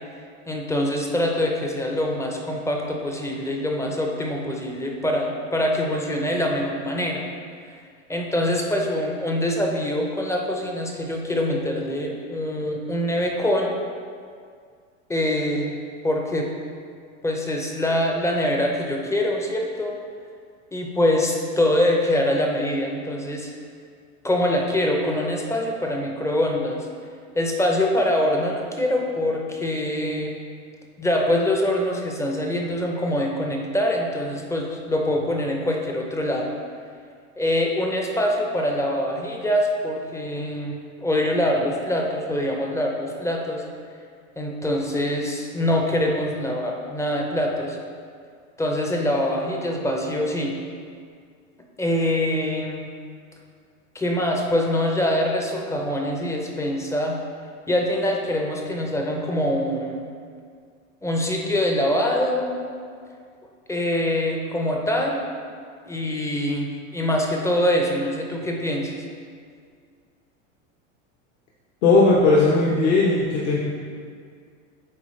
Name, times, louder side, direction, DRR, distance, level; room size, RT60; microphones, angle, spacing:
voice 1, 0.5-7.2 8.1-13.7 15.1-15.7 16.0-16.5 17.2-19.9 20.7-23.5 24.2-26.8 27.4-30.3 31.0-36.5 37.4-43.6 44.4-47.8 48.6-50.6 51.8-52.9 53.9-57.2 57.7-60.1 61.0-62.5 63.7-65.2 65.9-69.0, left 1 dB, 10° left, 0 dB, 0.4 m, -24 dB
voice 2, 71.8-73.6, left 3 dB, 65° left, -4 dB, 1.0 m, -17 dB
8.7 x 3.6 x 3.1 m, 2.1 s
supercardioid pair, 120°, 38 cm